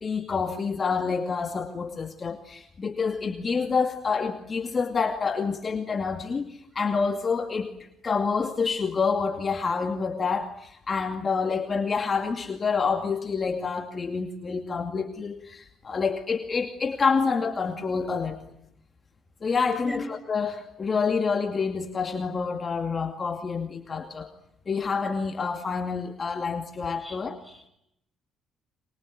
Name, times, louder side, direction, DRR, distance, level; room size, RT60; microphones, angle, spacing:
voice 1, 0.0-7.7 8.0-18.4 19.4-24.3 24.7-27.4, left 5 dB, 35° left, 6 dB, 2.4 m, -28 dB
voice 2, 19.8-20.0 27.0-27.2 27.4-27.7, left 2 dB, 5° right, 9 dB, 7.5 m, -37 dB
25.0 x 22.5 x 9.5 m, 0.81 s
cardioid pair, 95°, 0 cm